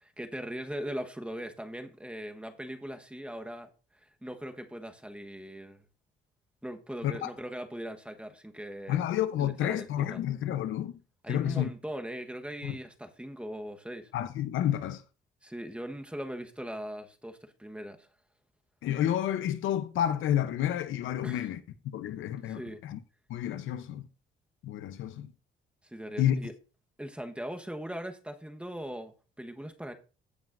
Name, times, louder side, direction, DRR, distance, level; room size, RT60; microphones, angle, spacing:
voice 1, 0.0-3.7 4.0-5.8 6.6-9.0 9.4-10.2 11.2-14.1 15.4-18.1 21.2-21.5 22.5-22.8 25.8-26.5 27.0-29.9, equal, 5° right, 1.2 m, -40 dB
voice 2, 8.9-11.0 11.3-11.7 12.6-12.8 14.1-15.0 18.8-23.0 23.3-24.1 24.6-25.3 26.2-26.4, left 11 dB, 80° left, 0.8 m, -30 dB
16.0 x 5.9 x 2.6 m
cardioid pair, 90°, 20 cm